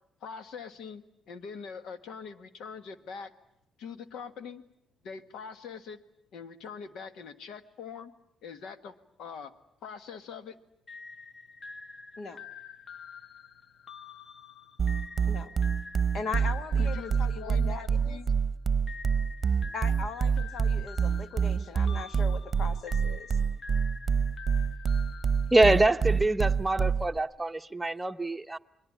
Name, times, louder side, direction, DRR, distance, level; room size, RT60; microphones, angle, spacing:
voice 1, 0.2-3.3 3.8-4.6 5.0-6.0 6.3-8.1 8.4-9.5 9.8-10.5 16.8-18.3, left 6 dB, 80° left, 1.6 m, -43 dB
sound 1, 10.9-18.3 18.9-26.1, left 5 dB, 40° left, 1.0 m, -47 dB
sound 2, 14.8-27.2, right 6 dB, 40° right, 1.0 m, -26 dB
voice 2, 16.1-18.2 19.7-23.3, left 4 dB, 60° left, 1.7 m, -39 dB
voice 3, 25.5-28.6, right 2 dB, 15° right, 1.0 m, -25 dB
28.5 x 21.5 x 8.7 m
cardioid pair, 90°, 0 cm